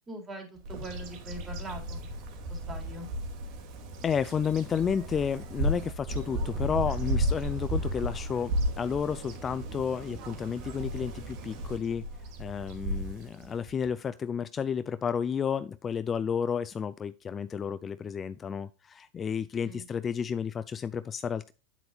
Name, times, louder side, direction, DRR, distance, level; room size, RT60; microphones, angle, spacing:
voice 1, 0.1-2.1 2.5-3.1 19.6-19.9, right 1 dB, 20° right, 3.7 m, -42 dB
Bird vocalization bird call bird song, 0.6-13.9, right 1 dB, 50° right, 2.3 m, -34 dB
voice 2, 4.0-12.1 12.4-21.5, left 7 dB, 25° left, 0.4 m, -31 dB
9.3 x 7.9 x 2.3 m
hypercardioid pair, 110°, 0 cm